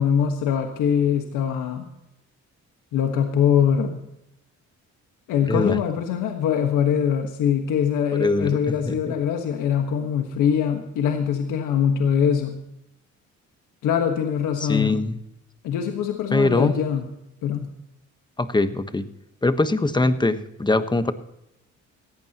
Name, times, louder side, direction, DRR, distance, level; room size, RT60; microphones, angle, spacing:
voice 1, 0.0-1.9 2.9-4.0 5.3-12.6 13.8-15.0 15.6-17.1 17.4-17.7, left 8 dB, 85° left, 4 dB, 1.5 m, -23 dB
voice 2, 5.5-5.8 8.1-9.1 14.6-15.2 16.3-16.7 18.4-19.0 19.4-21.1, left 2 dB, 15° left, 10 dB, 1.2 m, -22 dB
19.0 x 14.5 x 3.0 m, 0.84 s
cardioid pair, 90°, 30 cm